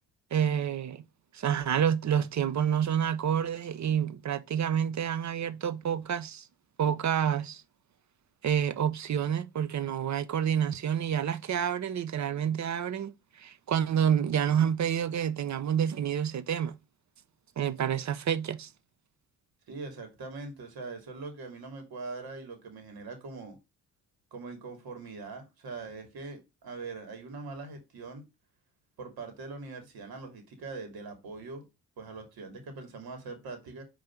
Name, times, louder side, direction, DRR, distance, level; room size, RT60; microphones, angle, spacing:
voice 1, 0.3-1.0 1.3-6.5 6.8-7.6 8.4-16.8 17.6-18.7, right 9 dB, 45° right, 0.8 m, -28 dB
voice 2, 19.7-23.6 24.3-28.2 29.0-31.6 32.0-33.8, right 3 dB, 65° right, 2.8 m, -42 dB
5.2 x 3.8 x 5.9 m
cardioid pair, 85°, 39 cm